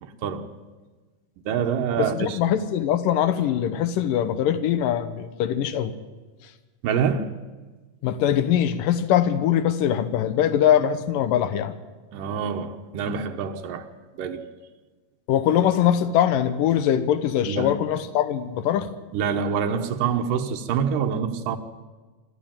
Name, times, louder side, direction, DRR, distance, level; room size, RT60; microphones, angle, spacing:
voice 1, 0.0-0.5 1.5-2.4 6.8-7.3 12.1-13.9 14.2-14.5 17.5-17.9 19.1-21.6, right 7 dB, 85° right, 2.8 m, -26 dB
voice 2, 2.0-5.9 8.0-11.7 15.3-18.9, left 10 dB, 90° left, 2.7 m, -22 dB
24.5 x 13.5 x 8.9 m
omnidirectional pair, 3.7 m